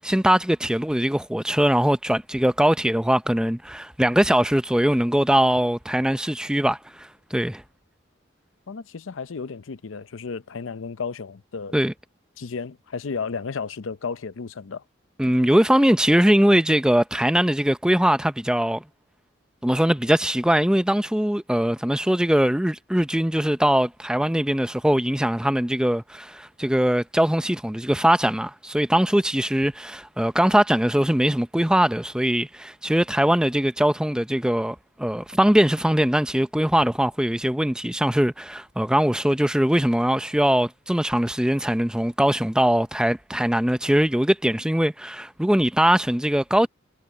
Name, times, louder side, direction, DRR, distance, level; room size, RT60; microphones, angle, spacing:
voice 1, 0.0-7.6 11.7-11.9 15.2-18.8 19.6-46.7, equal, 5° right, 0.6 m, -21 dB
voice 2, 8.7-11.7 12.4-14.8, left 5 dB, 85° left, 0.6 m, -33 dB
head